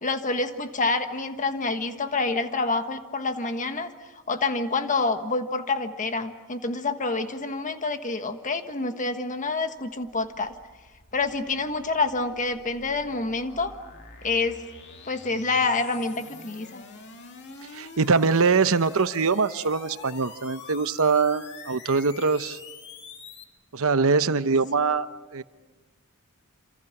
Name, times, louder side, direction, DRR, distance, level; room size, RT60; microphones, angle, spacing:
voice 1, 0.0-3.9 4.3-10.5 11.1-13.7 14.2-14.6 15.1-16.8, left 3 dB, 35° left, 8 dB, 1.5 m, -27 dB
sound 1, 9.5-23.4, left 4 dB, 50° left, 2.3 m, -46 dB
voice 2, 17.7-22.6 23.7-25.1 25.3-25.4, right 4 dB, 65° right, 12 dB, 0.9 m, -23 dB
28.0 x 27.0 x 6.0 m, 1.3 s
head